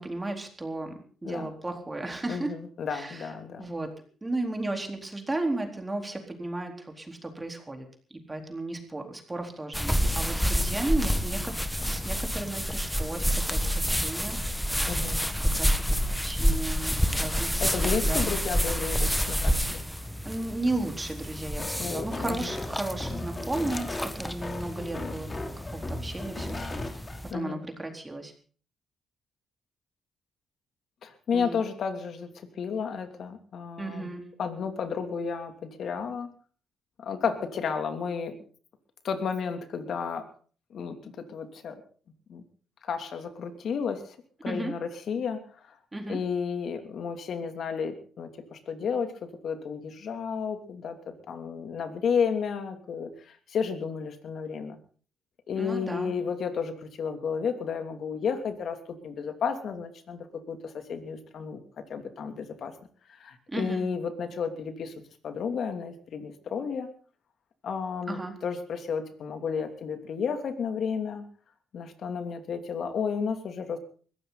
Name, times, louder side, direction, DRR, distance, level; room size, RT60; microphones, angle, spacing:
voice 1, 0.0-2.6 2.9-3.3 3.6-3.9 4.2-7.9 8.1-11.5 11.9-14.4 15.5-18.3 19.3-19.4 20.2-27.0 27.3-28.3 31.3-31.6 33.8-34.2 44.5-44.7 45.9-46.2 55.5-56.1 63.5-63.8 68.1-68.3, right 2 dB, 20° right, 3 dB, 4.0 m, -34 dB
voice 2, 2.3-3.7 14.9-15.2 17.6-19.8 21.8-22.5 27.3-27.6 31.0-32.3 32.6-34.1 34.4-36.3 37.0-38.4 39.0-40.3 40.7-41.8 42.3-42.4 42.8-44.2 44.4-45.4 45.7-45.8 46.1-54.8 55.5-58.8 59.0-61.6 61.9-62.7 63.2-64.9 65.2-66.9 67.6-71.2 71.7-73.8, left 6 dB, 65° left, 7 dB, 2.8 m, -32 dB
sound 1, 9.7-27.3, equal, ahead, 1.4 m, -29 dB
sound 2, 21.5-27.2, left 2 dB, 30° left, 3.2 m, -37 dB
21.0 x 15.5 x 4.1 m, 0.42 s
cardioid pair, 85°, 0 cm